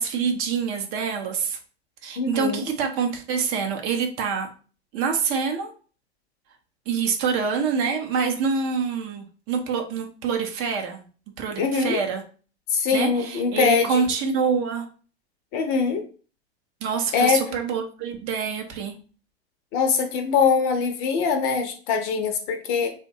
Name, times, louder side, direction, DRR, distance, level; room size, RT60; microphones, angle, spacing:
voice 1, 0.0-1.6 2.0-4.5 4.9-5.7 6.9-11.1 11.4-12.2 12.9-14.9 16.8-18.9, right 6 dB, 40° right, 3 dB, 0.5 m, -26 dB
voice 2, 2.2-2.7 11.6-12.0 12.7-14.0 15.5-16.0 17.1-17.4 19.7-22.9, left 5 dB, 40° left, 5 dB, 0.5 m, -23 dB
2.6 x 2.1 x 2.7 m, 0.38 s
hypercardioid pair, 105°, 33 cm